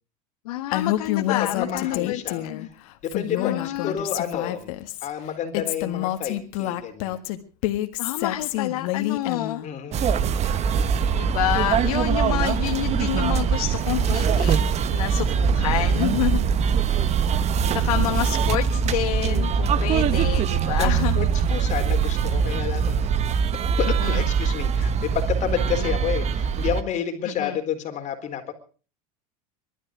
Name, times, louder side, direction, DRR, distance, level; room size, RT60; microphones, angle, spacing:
voice 1, 0.4-2.7 3.4-3.9 8.0-9.6 11.2-14.6 14.9-16.4 17.7-21.2 23.9-24.2 25.8-25.9 27.2-27.6, left 14 dB, 85° left, 6 dB, 1.2 m, -28 dB
Female speech woman speaking, 0.7-2.7 3.1-5.1 5.5-9.7, left 15 dB, 70° left, 1.8 m, -28 dB
voice 2, 1.4-2.7 3.0-4.7 5.0-7.2 9.6-10.2 20.8-23.0 23.8-28.5, left 8 dB, 40° left, 6 dB, 4.0 m, -30 dB
sound 1, 9.9-26.8, right 6 dB, 35° right, 1.1 m, -22 dB
22.0 x 13.0 x 5.1 m, 0.39 s
supercardioid pair, 110°, 18 cm